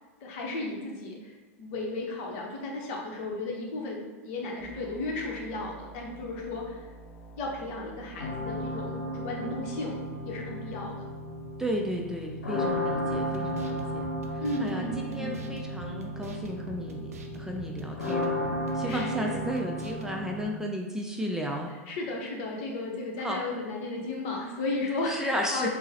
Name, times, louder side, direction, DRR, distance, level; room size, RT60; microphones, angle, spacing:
voice 1, 0.2-1.3 1.6-6.8 7.4-10.0 10.2-10.9 14.4-15.4 18.7-19.5 21.7-25.7, left 2 dB, 55° left, 0 dB, 0.8 m, -34 dB
sound 1, 4.6-8.7, right 2 dB, 25° left, 0.9 m, -49 dB
sound 2, 8.2-20.4, equal, 90° left, 0.8 m, -34 dB
voice 2, 11.6-14.0 14.6-18.3 18.8-21.7 23.2-23.4 25.1-25.7, equal, 5° right, 0 dB, 0.3 m, -33 dB
sound 3, 13.1-20.1, right 4 dB, 80° right, 0.4 m, -47 dB
3.7 x 2.0 x 2.8 m, 1.3 s
hypercardioid pair, 95°, 8 cm